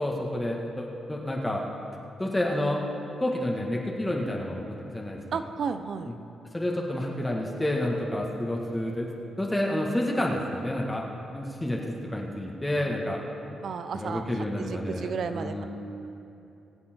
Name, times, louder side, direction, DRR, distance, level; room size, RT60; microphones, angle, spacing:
voice 1, 0.0-1.6 2.2-2.9 3.2-5.4 6.1-6.2 6.5-9.1 9.4-11.1 11.3-13.2 13.9-15.7, left 1 dB, 15° left, -1 dB, 2.0 m, -29 dB
voice 2, 5.3-6.1 13.6-15.7, right 6 dB, 65° right, 10 dB, 0.7 m, -33 dB
21.5 x 8.2 x 4.7 m, 2.8 s
hypercardioid pair, 40°, 0 cm